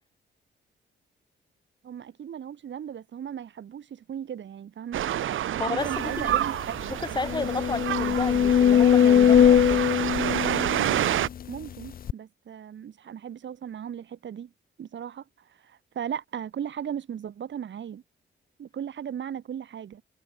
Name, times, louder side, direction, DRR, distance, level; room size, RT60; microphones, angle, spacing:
voice 1, 1.8-5.1 5.5-7.0 11.5-14.5 14.8-15.2 15.6-18.0 18.6-20.0, right 9 dB, 65° right, 7.1 m, -37 dB
sound 1, 4.9-11.3, right 11 dB, 80° right, 1.2 m, -28 dB
voice 2, 5.6-6.4 6.9-9.9, left 3 dB, 20° left, 3.8 m, -32 dB
sound 2, 6.1-6.2 6.5-6.6 7.2-11.4 12.1-12.2, left 9 dB, 45° left, 0.5 m, -20 dB
wide cardioid pair, 140°, 20 cm